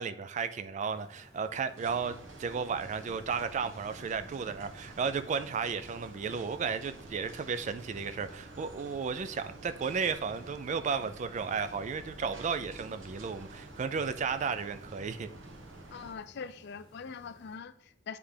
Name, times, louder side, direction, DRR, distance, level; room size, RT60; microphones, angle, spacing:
voice 1, 0.0-15.3, right 5 dB, 40° right, 0.3 m, -34 dB
sound 1, 0.9-17.6, left 1 dB, 5° left, 2.2 m, -58 dB
sound 2, 1.7-16.1, right 2 dB, 75° right, 1.0 m, -49 dB
voice 2, 15.9-18.2, left 6 dB, 60° left, 0.4 m, -43 dB
9.3 x 3.3 x 3.3 m
head